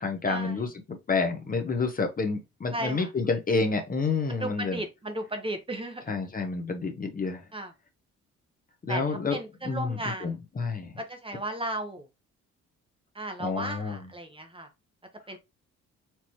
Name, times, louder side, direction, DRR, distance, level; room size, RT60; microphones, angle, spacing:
voice 1, 0.0-4.8 6.1-7.5 8.8-9.4 9.6-10.9 13.4-14.1, left 4 dB, 30° left, 0.8 m, -29 dB
voice 2, 2.7-3.1 4.3-6.2 7.5-7.7 8.9-10.4 11.0-12.1 13.1-14.7 15.3-15.4, right 1 dB, 20° right, 0.9 m, -35 dB
4.4 x 3.0 x 2.9 m
cardioid pair, 90°, 30 cm